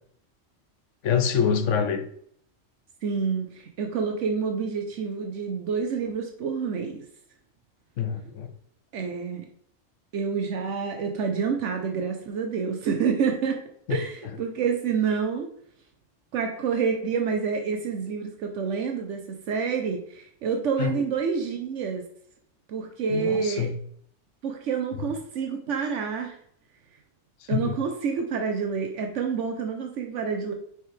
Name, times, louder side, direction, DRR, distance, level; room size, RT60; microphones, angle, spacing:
voice 1, 1.0-2.0 8.0-8.5 13.9-14.0 14.2-14.3 20.8-21.0 23.1-23.8 27.4-27.7, left 7 dB, 75° left, 7 dB, 1.1 m, -26 dB
voice 2, 3.0-7.0 8.9-9.5 10.1-13.6 13.9-15.5 16.3-22.0 22.7-23.7 24.4-26.4 27.5-30.5, right 6 dB, 75° right, 4 dB, 1.0 m, -28 dB
6.3 x 4.7 x 3.2 m, 0.65 s
omnidirectional pair, 1.3 m